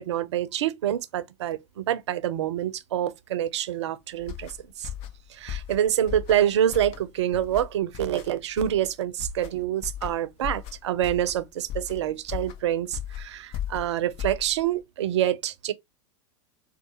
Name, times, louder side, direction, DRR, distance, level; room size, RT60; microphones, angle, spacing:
voice 1, 0.0-4.5 4.8-4.9 5.3-15.7, right 11 dB, 65° right, 0.6 m, -26 dB
sound 1, 4.2-14.8, left 10 dB, 40° left, 0.7 m, -37 dB
4.6 x 2.4 x 2.8 m
figure-of-eight pair, 90°, 16 cm